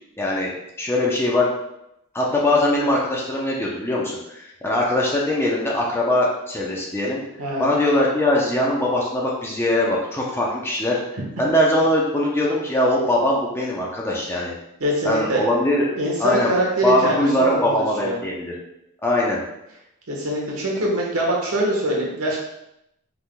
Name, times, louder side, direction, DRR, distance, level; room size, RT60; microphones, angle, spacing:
voice 1, 0.2-0.5 0.8-1.5 2.1-7.2 7.6-11.0 11.4-14.5 15.0-15.9 16.2-16.5 16.8-18.5 19.0-19.4, left 1 dB, 10° left, -4 dB, 0.6 m, -21 dB
voice 2, 14.8-15.4 15.9-18.2 20.1-22.4, right 1 dB, 75° right, -2 dB, 1.3 m, -23 dB
5.6 x 3.7 x 2.2 m, 0.84 s
head